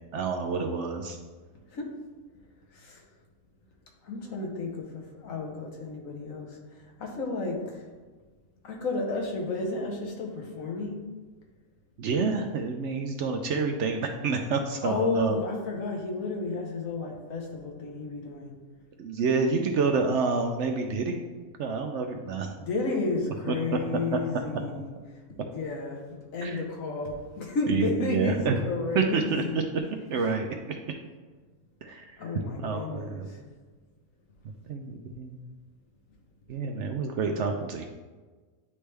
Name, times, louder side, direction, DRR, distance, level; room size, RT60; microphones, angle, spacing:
voice 1, 0.1-1.2 12.0-15.4 19.0-21.2 21.6-22.6 23.5-23.8 26.4-26.6 27.7-28.6 28.9-29.8 30.1-30.8 31.8-32.2 32.6-33.3 34.7-35.4 36.5-37.9, right 4 dB, 65° right, 4 dB, 0.7 m, -28 dB
voice 2, 4.0-6.6 7.0-7.8 8.6-11.0 14.8-18.5 22.6-24.9 25.4-29.7 32.2-33.4, left 3 dB, 70° left, 1 dB, 1.4 m, -32 dB
9.7 x 3.2 x 3.3 m, 1.3 s
omnidirectional pair, 1.5 m